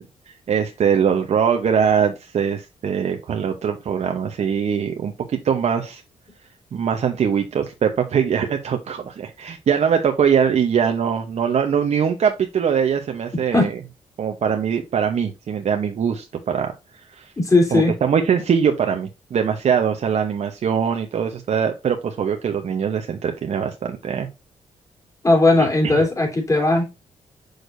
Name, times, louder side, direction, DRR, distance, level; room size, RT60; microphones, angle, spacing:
voice 1, 0.3-6.0 6.7-13.8 14.2-16.7 17.1-17.3 17.7-24.3 25.6-25.7, right 7 dB, 60° right, 0.9 m, -22 dB
voice 2, 17.4-17.9 25.2-26.9, left 2 dB, 25° left, 3.3 m, -17 dB
6.5 x 6.3 x 2.6 m
cardioid pair, 70°, 13 cm